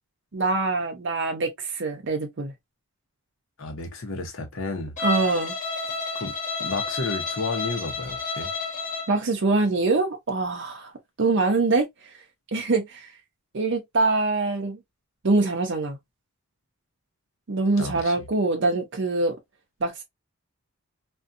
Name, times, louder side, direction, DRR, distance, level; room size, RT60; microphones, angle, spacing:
voice 1, 0.3-2.5 5.0-5.6 9.1-10.9 11.2-11.9 12.5-13.1 13.5-14.8 15.2-16.0 17.5-19.3 19.8-20.0, right 3 dB, 55° right, 0.6 m, -24 dB
voice 2, 3.6-4.9 6.1-6.3 6.6-8.5 17.8-18.2, left 3 dB, 60° left, 0.8 m, -32 dB
Bowed string instrument, 5.0-9.2, left 3 dB, 35° left, 1.2 m, -30 dB
2.6 x 2.2 x 2.5 m
head